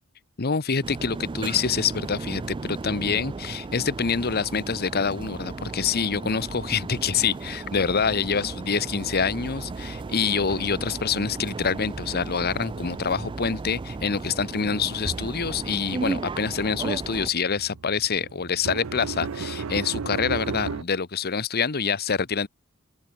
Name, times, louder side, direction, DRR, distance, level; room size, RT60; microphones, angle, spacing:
voice 1, 0.4-22.5, left 5 dB, 50° left, 1.0 m, -26 dB
sound 1, 0.8-17.3, right 3 dB, 25° right, 0.3 m, -35 dB
sound 2, 9.8-11.1 11.4-20.8, right 5 dB, 70° right, 0.6 m, -37 dB
head